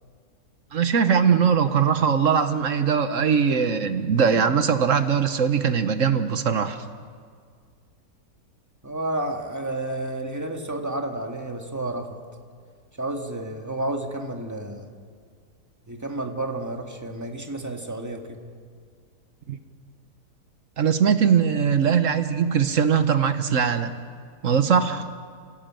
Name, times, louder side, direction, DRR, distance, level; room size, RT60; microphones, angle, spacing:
voice 1, 0.7-6.8 19.5-19.6 20.8-23.9 24.4-25.0, right 7 dB, 55° right, 10 dB, 1.2 m, -21 dB
voice 2, 8.8-12.2 13.0-14.9 15.9-18.4, right 2 dB, 10° right, 3 dB, 1.8 m, -31 dB
28.5 x 17.0 x 7.6 m, 2.1 s
omnidirectional pair, 1.8 m